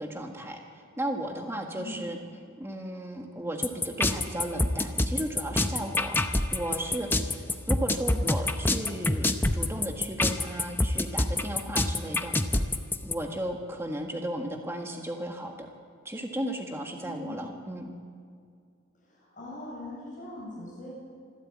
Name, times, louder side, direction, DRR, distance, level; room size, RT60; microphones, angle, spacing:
voice 1, 0.0-2.2 2.6-6.2 6.5-12.7 13.0-15.7 16.0-17.9, right 1 dB, 10° right, 2 dB, 1.6 m, -35 dB
sound 1, 3.6-13.1, left 2 dB, 10° left, 0.7 m, -26 dB
voice 2, 17.0-17.4 19.0-20.9, left 1 dB, 40° left, -5 dB, 7.9 m, -41 dB
26.0 x 12.5 x 8.6 m, 2.3 s
head